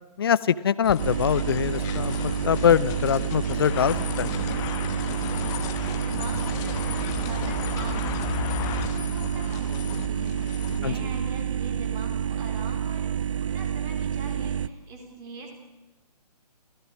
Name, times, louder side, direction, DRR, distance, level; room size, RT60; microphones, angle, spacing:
voice 1, 0.2-4.4 10.8-10.9, left 8 dB, 35° left, 19 dB, 0.7 m, -23 dB
sound 1, 0.8-10.8, left 10 dB, 15° left, 1.2 m, -35 dB
sound 2, 1.0-14.7, right 8 dB, 50° right, 0.7 m, -29 dB
voice 2, 5.2-15.5, right 2 dB, 15° right, 4 dB, 4.0 m, -42 dB
27.5 x 16.5 x 7.3 m, 1.1 s
figure-of-eight pair, 140°, 21 cm